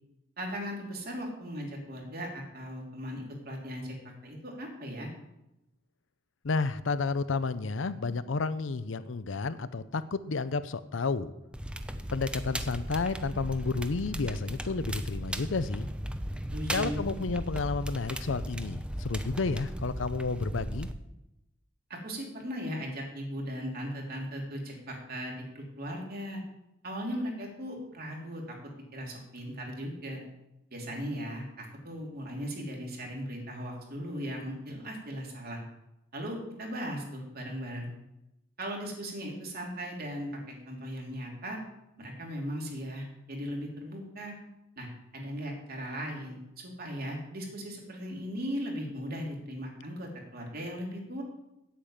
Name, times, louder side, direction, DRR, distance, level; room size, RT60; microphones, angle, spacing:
voice 1, 0.4-3.9 4.2-5.1 16.5-17.1 21.9-26.4 26.8-28.5 28.9-30.2 30.7-35.6 36.1-37.9 38.6-41.6 42.0-44.3 44.8-44.9 45.1-51.2, equal, 50° right, 0 dB, 3.1 m, -38 dB
voice 2, 6.4-11.3 12.1-15.9 16.7-20.9, left 4 dB, 80° left, 14 dB, 0.6 m, -31 dB
Crackle, 11.5-20.9, equal, 5° right, 0.6 m, -36 dB
8.5 x 7.4 x 8.7 m, 0.90 s
head